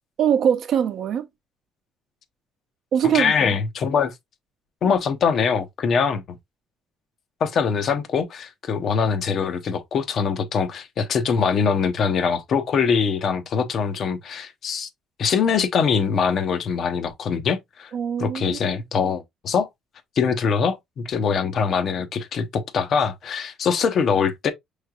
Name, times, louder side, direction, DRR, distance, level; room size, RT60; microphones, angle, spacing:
voice 1, 0.2-1.3 2.9-3.5 17.9-18.6 19.0-19.1, right 8 dB, 55° right, 0.7 m, -22 dB
voice 2, 3.0-4.1 4.8-6.4 7.4-14.9 15.2-17.9 18.2-19.7 20.2-24.5, left 6 dB, 50° left, 0.7 m, -23 dB
5.6 x 3.2 x 2.3 m
cardioid pair, 115°, 0 cm